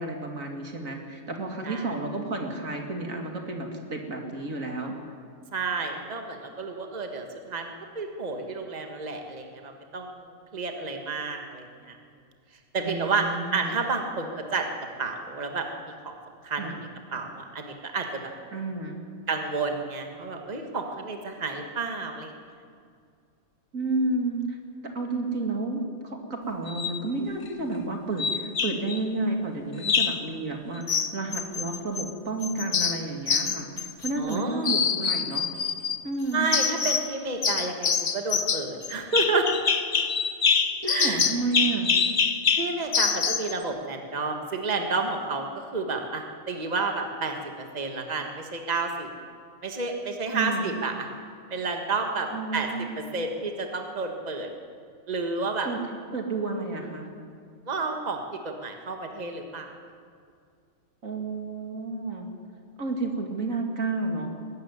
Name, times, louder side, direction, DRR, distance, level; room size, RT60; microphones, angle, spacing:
voice 1, 0.0-4.9 12.8-13.8 16.5-16.8 18.5-19.0 23.7-24.6 24.9-35.5 36.0-36.5 40.8-41.9 50.3-50.7 52.3-52.9 55.6-57.1 61.0-62.3 62.8-64.3, right 3 dB, 75° right, 2 dB, 2.8 m, -31 dB
voice 2, 5.5-10.1 10.5-11.7 12.7-13.3 13.5-14.7 15.0-16.1 16.4-16.6 17.1-18.3 19.3-22.3 34.2-34.7 36.3-39.5 40.8-41.2 42.6-47.3 47.7-49.1 49.6-51.1 51.5-52.7 53.1-54.5 55.1-55.7 57.7-58.2 58.4-59.7, right 4 dB, 30° right, 4 dB, 1.7 m, -30 dB
sound 1, 26.7-27.0 28.2-29.0 29.8-30.3 30.9-32.1 32.4-34.4 34.6-36.0 36.5-37.1 37.4-43.5, left 6 dB, 45° left, 1.0 m, -25 dB
21.5 x 13.0 x 9.7 m, 2.2 s
omnidirectional pair, 1.4 m